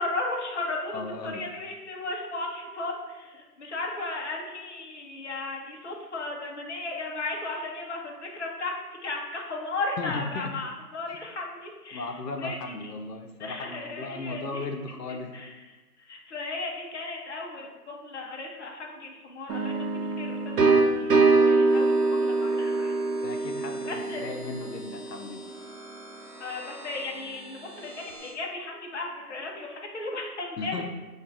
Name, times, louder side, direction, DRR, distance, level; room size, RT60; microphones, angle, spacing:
voice 1, 0.0-8.8 9.0-12.9 13.4-14.7 15.1-15.7 16.0-22.9 23.8-24.4 25.4-25.5 26.4-30.8, left 2 dB, 45° left, -1 dB, 0.8 m, -35 dB
voice 2, 0.9-1.4 10.0-10.5 11.9-15.3 23.2-25.4 30.6-30.8, left 3 dB, 85° left, 4 dB, 0.7 m, -36 dB
sound 1, 19.5-25.2, right 3 dB, 75° right, 0.9 m, -24 dB
sound 2, 21.7-28.3, equal, 10° right, 1.1 m, -46 dB
4.5 x 2.4 x 4.6 m, 1.2 s
hypercardioid pair, 165°, 48 cm